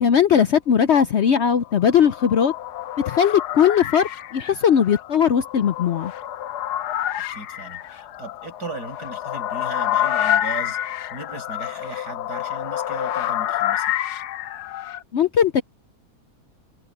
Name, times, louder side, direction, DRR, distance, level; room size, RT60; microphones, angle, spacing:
voice 1, 0.0-2.5 3.1-6.1 15.1-15.6, left 8 dB, 60° left, 0.7 m, -19 dB
sound 1, 1.6-15.0, left 12 dB, 80° left, 1.3 m, -28 dB
voice 2, 7.3-10.8 11.1-13.9, right 3 dB, 75° right, 8.5 m, -37 dB
omnidirectional pair, 1.7 m